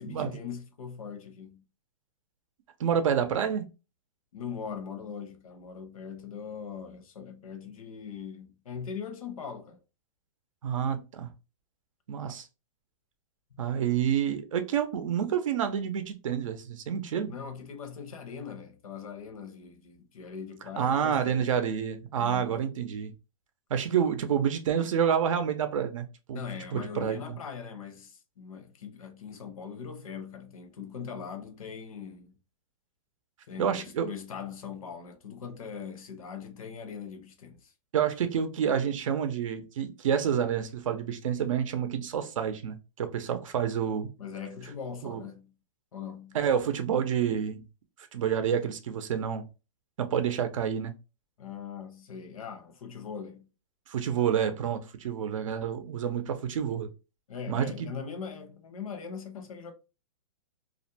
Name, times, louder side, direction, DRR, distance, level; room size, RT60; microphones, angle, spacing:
voice 1, 0.0-1.6 4.3-9.8 17.3-21.6 22.2-22.7 26.3-32.4 33.5-37.7 44.2-45.5 45.9-46.4 51.4-53.5 57.3-59.7, left 6 dB, 85° left, 0.8 m, -41 dB
voice 2, 2.8-3.7 10.6-11.3 12.1-12.5 13.6-17.3 20.8-23.1 23.7-26.4 26.7-27.4 33.6-34.1 37.9-44.1 45.0-45.2 46.3-47.6 48.1-49.4 50.0-50.9 53.9-56.9 57.5-57.9, right 8 dB, 70° right, 0.5 m, -28 dB
2.5 x 2.1 x 2.7 m
hypercardioid pair, 160°, 17 cm